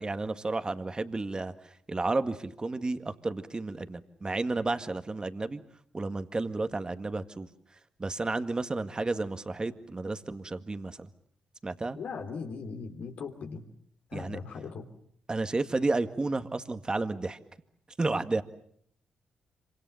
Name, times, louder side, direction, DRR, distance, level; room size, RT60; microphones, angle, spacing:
voice 1, 0.0-1.5 1.9-5.6 5.9-7.5 8.0-11.1 11.6-12.0 14.1-14.4 15.3-17.4 18.0-18.4, right 3 dB, 30° right, 9 dB, 1.9 m, -31 dB
voice 2, 11.9-13.6 14.1-14.8, left 5 dB, 70° left, 5 dB, 3.3 m, -39 dB
26.5 x 25.5 x 7.1 m, 0.66 s
supercardioid pair, 45°, 3 cm